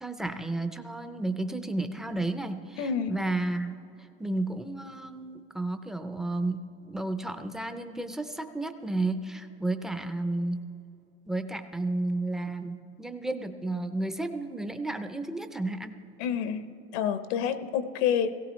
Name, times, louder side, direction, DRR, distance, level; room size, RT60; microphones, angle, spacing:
voice 1, 0.0-3.8 4.2-10.6 11.3-15.9, right 2 dB, ahead, 8 dB, 0.4 m, -32 dB
voice 2, 2.8-3.2 16.2-18.4, left 8 dB, 80° left, 11 dB, 0.9 m, -28 dB
17.5 x 16.5 x 3.1 m, 2.7 s
supercardioid pair, 140°, 32 cm